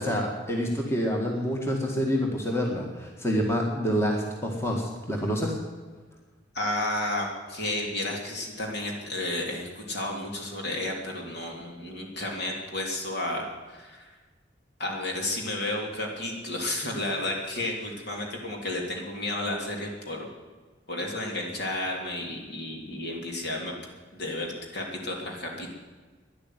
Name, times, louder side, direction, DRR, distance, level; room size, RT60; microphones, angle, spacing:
voice 1, 0.0-5.6, equal, 15° left, 0 dB, 1.9 m, -27 dB
voice 2, 6.5-14.1 14.8-20.3 20.9-23.8 24.1-25.7, left 1 dB, 60° left, 0 dB, 3.5 m, -32 dB
12.0 x 11.0 x 9.5 m, 1.4 s
head